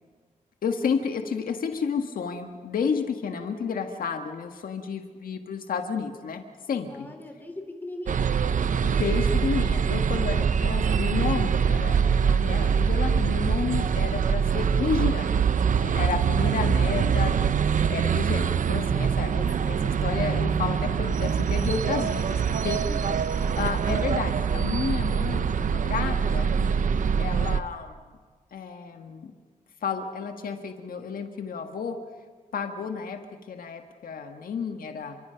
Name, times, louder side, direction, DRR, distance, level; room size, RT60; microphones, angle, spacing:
voice 1, 0.6-6.4 6.7-7.1 8.8-15.5 15.7-17.3 17.9-22.4 22.6-22.8 23.6-27.9 28.5-29.3 29.8-32.0 32.5-33.2 33.5-35.2, left 6 dB, 75° left, 5 dB, 1.7 m, -31 dB
voice 2, 3.1-3.8 6.9-8.5 13.5-13.9 22.6-23.0 26.7-27.1, left 1 dB, 15° left, 4 dB, 4.2 m, -43 dB
sound 1, 8.1-27.6, right 7 dB, 60° right, 0.9 m, -24 dB
29.5 x 24.0 x 5.9 m, 1.5 s
wide cardioid pair, 135°, 15 cm